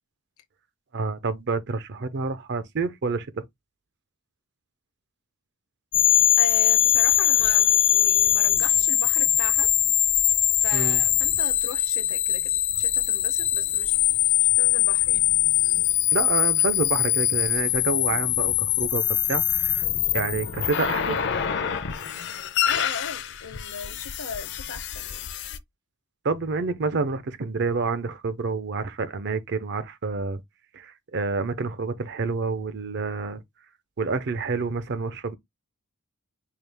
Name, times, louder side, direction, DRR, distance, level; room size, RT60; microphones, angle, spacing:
voice 1, 0.9-3.4 10.7-11.0 16.1-19.8 20.1-21.2 26.2-30.4 30.7-33.4 34.0-35.4, right 4 dB, 50° right, 0.5 m, -28 dB
sound 1, 5.9-25.6, left 11 dB, 55° left, 0.5 m, -22 dB
voice 2, 6.4-9.7 10.6-12.5 12.8-14.0 14.6-15.2 22.7-25.3, left 5 dB, 75° left, 0.9 m, -37 dB
4.7 x 2.3 x 3.4 m
head